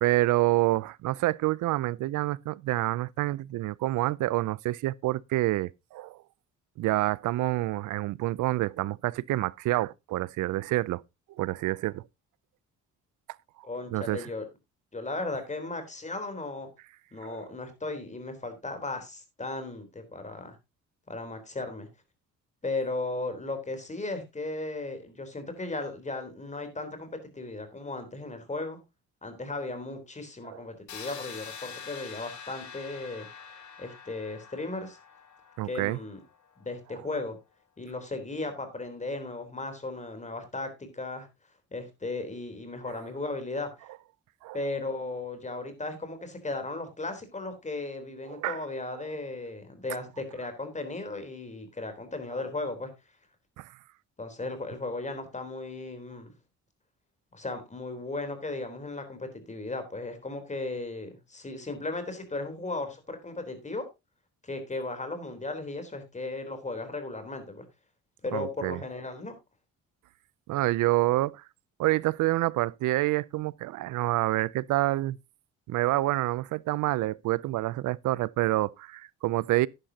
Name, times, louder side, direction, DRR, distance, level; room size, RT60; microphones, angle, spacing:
voice 1, 0.0-6.2 6.8-11.0 11.4-12.0 13.9-14.3 17.2-17.5 30.4-30.6 35.6-36.0 44.4-44.6 48.3-48.6 53.6-53.7 68.3-68.8 70.5-71.4 71.8-75.2 75.7-79.7, right 17 dB, 80° right, 0.6 m, -27 dB
voice 2, 13.6-14.5 14.9-16.7 17.1-20.6 21.1-21.9 22.6-28.8 29.2-33.3 33.8-35.0 35.6-36.2 36.6-37.4 37.8-41.3 41.7-43.9 44.5-52.9 54.2-56.3 57.3-63.9 64.4-67.7 68.2-69.4, left 2 dB, 25° left, 3.7 m, -36 dB
sound 1, 30.9-36.7, left 6 dB, 70° left, 2.6 m, -45 dB
11.5 x 10.5 x 2.8 m
cardioid pair, 90°, 30 cm